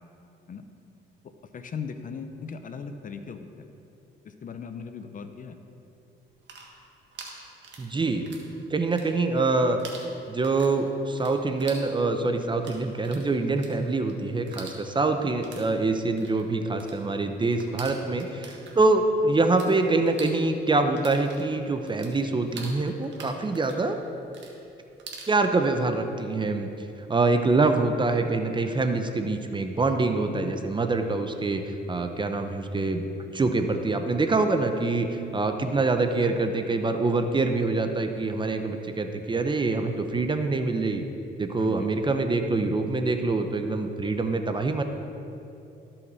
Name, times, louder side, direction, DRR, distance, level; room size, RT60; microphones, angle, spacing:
voice 1, 1.5-3.7 4.2-5.6 41.6-41.9, left 6 dB, 40° left, 8 dB, 0.6 m, -38 dB
sound 1, 6.2-8.5 8.8-9.5 9.8-19.7 20.0-25.3, right 4 dB, 65° right, 1.4 m, -45 dB
voice 2, 7.8-8.3 8.7-9.8 10.3-24.0 25.3-26.7 27.1-33.1 33.3-35.1 35.3-41.0 41.4-44.8, right 3 dB, 25° right, 6 dB, 0.6 m, -25 dB
12.5 x 5.7 x 4.1 m, 2.8 s
cardioid pair, 90°, 20 cm